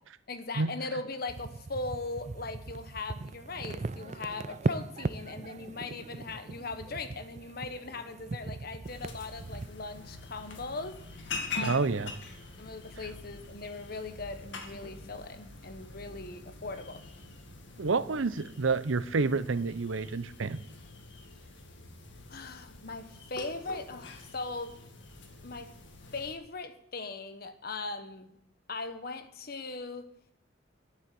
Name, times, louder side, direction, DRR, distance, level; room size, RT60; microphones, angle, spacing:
voice 1, 0.3-10.9 11.5-12.0 12.6-17.0 22.3-24.7 25.4-25.7 26.1-28.3 28.7-30.1, left 3 dB, 50° left, 9 dB, 1.1 m, -39 dB
sound 1, 1.3-9.7, right 3 dB, 35° right, 0.4 m, -38 dB
sound 2, 8.8-26.3, left 3 dB, 70° left, 2.0 m, -45 dB
voice 2, 11.6-12.1 17.8-20.6, right 4 dB, 80° right, 15 dB, 0.7 m, -29 dB
11.0 x 8.7 x 7.6 m, 0.73 s
head